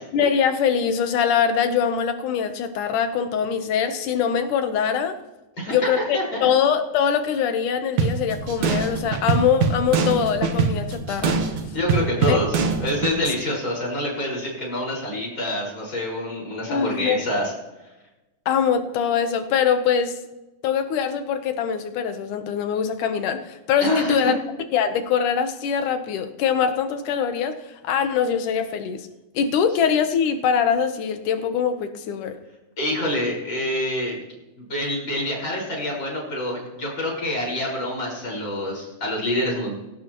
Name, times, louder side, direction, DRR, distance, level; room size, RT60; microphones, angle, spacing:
voice 1, 0.1-5.2 5.7-11.4 12.2-12.4 16.7-17.2 18.5-20.2 20.6-24.3 24.7-29.1 29.3-32.4, left 7 dB, 85° left, 8 dB, 2.6 m, -23 dB
voice 2, 5.6-6.5 11.7-17.5 23.8-24.3 32.8-34.2 34.6-39.7, left 1 dB, 35° left, -3 dB, 6.0 m, -26 dB
sound 1, 8.0-13.2, right 5 dB, 70° right, 2.4 m, -24 dB
19.0 x 17.5 x 3.1 m, 1.0 s
omnidirectional pair, 3.5 m